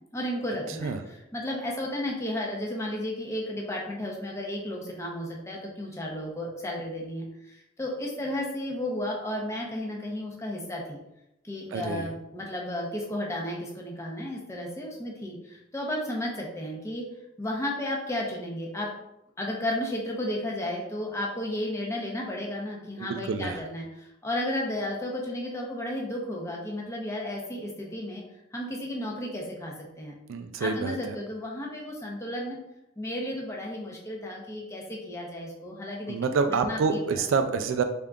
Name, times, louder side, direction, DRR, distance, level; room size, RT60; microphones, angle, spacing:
voice 1, 0.1-11.0 11.4-17.1 17.4-18.9 19.4-28.2 28.5-30.1 30.6-32.6 33.0-36.2 36.5-37.3, left 1 dB, 15° left, -2 dB, 0.6 m, -33 dB
voice 2, 11.7-12.1 23.0-23.6 30.3-31.2 36.1-37.8, right 5 dB, 80° right, 8 dB, 0.3 m, -27 dB
3.7 x 3.6 x 2.3 m, 0.88 s
head